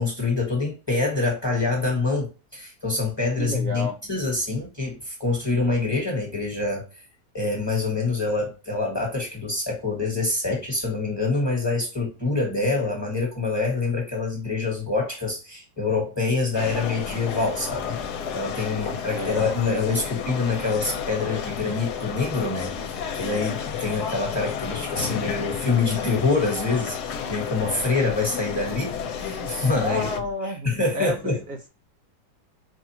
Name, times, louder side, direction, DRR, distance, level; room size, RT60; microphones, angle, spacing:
voice 1, 0.0-6.8 7.3-18.0 18.3-22.7 23.1-30.1 30.6-31.4, left 3 dB, 15° left, -1 dB, 1.2 m, -26 dB
voice 2, 3.4-4.0 18.7-19.6 29.8-31.1 31.5-31.7, equal, 65° right, 2 dB, 1.1 m, -31 dB
sound 1, 16.5-30.2, left 7 dB, 70° left, 1.1 m, -31 dB
4.7 x 2.4 x 2.8 m, 0.31 s
omnidirectional pair, 1.9 m